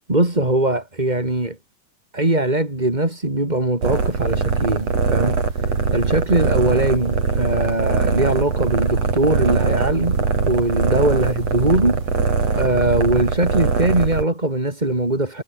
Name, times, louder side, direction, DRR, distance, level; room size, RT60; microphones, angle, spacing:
voice 1, 0.1-1.6 2.1-12.0 12.5-15.4, right 2 dB, 10° right, 3.8 m, -21 dB
sound 1, 3.8-14.2, right 5 dB, 45° right, 4.9 m, -21 dB
omnidirectional pair, 4.0 m